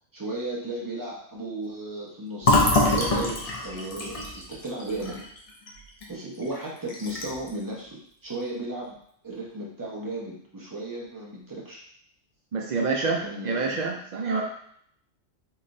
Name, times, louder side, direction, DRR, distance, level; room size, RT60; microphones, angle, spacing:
voice 1, 0.1-5.2 6.1-9.0 9.2-11.8 13.0-13.9, right 2 dB, 20° right, -4 dB, 0.8 m, -35 dB
Fill (with liquid), 2.4-6.1 6.4-6.6 6.9-7.5, left 2 dB, 40° left, 0.5 m, -25 dB
voice 2, 12.5-14.4, right 4 dB, 90° right, 0 dB, 0.3 m, -27 dB
3.8 x 3.1 x 2.6 m, 0.67 s
omnidirectional pair, 1.3 m